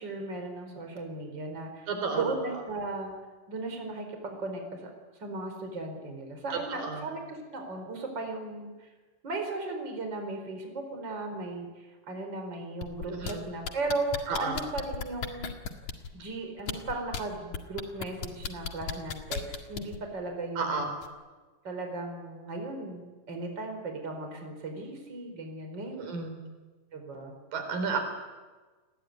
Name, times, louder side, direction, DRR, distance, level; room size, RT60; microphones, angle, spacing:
voice 1, 0.0-3.2 3.5-4.9 5.2-8.9 9.2-15.5 16.1-20.9 21.6-26.1 26.9-27.3, right 2 dB, 30° right, 4 dB, 5.2 m, -36 dB
voice 2, 1.9-2.2 2.5-2.6 6.5-7.1 13.1-13.5 14.3-14.6 20.6-20.9 26.0-26.4 27.5-28.0, right 4 dB, 80° right, 5 dB, 5.7 m, -32 dB
sound 1, 12.8-13.3 13.7-16.1 16.6-17.2 17.5-20.0 21.0-21.1, left 7 dB, 60° left, 3.2 m, -34 dB
29.5 x 20.5 x 9.6 m, 1.3 s
omnidirectional pair, 3.9 m